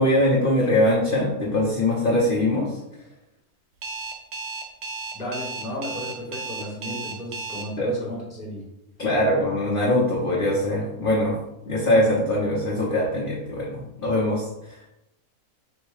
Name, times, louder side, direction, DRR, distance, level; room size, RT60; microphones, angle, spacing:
voice 1, 0.0-2.7 7.8-7.9 9.0-11.4 11.6-14.4, left 1 dB, 45° left, -4 dB, 0.9 m, -22 dB
Alarm, 3.8-7.6, right 3 dB, 85° right, 1.1 m, -33 dB
voice 2, 5.1-8.6, equal, 5° right, -5 dB, 1.0 m, -33 dB
4.5 x 2.3 x 4.8 m, 0.85 s
omnidirectional pair, 1.5 m